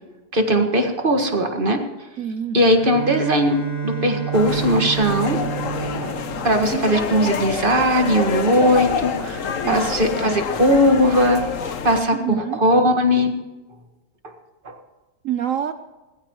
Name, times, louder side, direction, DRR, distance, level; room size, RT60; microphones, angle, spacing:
voice 1, 0.3-1.8 2.5-5.4 6.0-6.1 6.4-11.4 11.8-13.4 14.2-14.3 14.6-14.8, equal, 30° right, 4 dB, 1.7 m, -19 dB
voice 2, 2.2-2.6 6.7-7.3 9.6-9.9 12.1-12.6 15.2-15.7, right 9 dB, 70° right, 10 dB, 0.8 m, -27 dB
Bowed string instrument, 2.7-7.5, right 7 dB, 85° left, 5.0 m, -29 dB
sound 1, 4.3-12.0, left 6 dB, 55° left, 1.2 m, -27 dB
20.0 x 15.0 x 3.0 m, 1.2 s
omnidirectional pair, 1.9 m